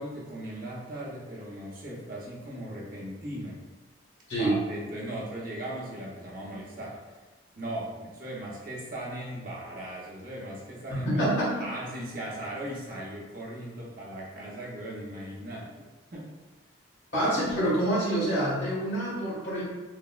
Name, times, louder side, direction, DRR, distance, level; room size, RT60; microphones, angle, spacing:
voice 1, 0.0-3.6 4.4-7.0 7.5-11.2 11.6-15.8 16.1-16.3, right 1 dB, 45° right, -4 dB, 0.6 m, -38 dB
voice 2, 4.3-4.6 11.0-11.7 17.1-19.6, right 1 dB, 65° left, -7 dB, 1.3 m, -26 dB
3.9 x 2.0 x 2.3 m, 1.2 s
head